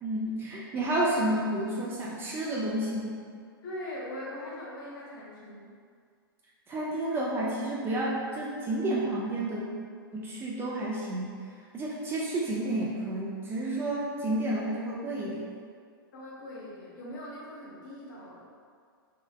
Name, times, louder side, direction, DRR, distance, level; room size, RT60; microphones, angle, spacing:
voice 1, 0.0-3.2 6.7-9.7 10.1-11.3 11.7-15.5, right 1 dB, 20° right, -5 dB, 0.3 m, -30 dB
voice 2, 3.6-5.7 16.1-18.4, left 1 dB, 55° left, -5 dB, 0.8 m, -41 dB
2.8 x 2.0 x 2.3 m, 2.1 s
hypercardioid pair, 115°, 12 cm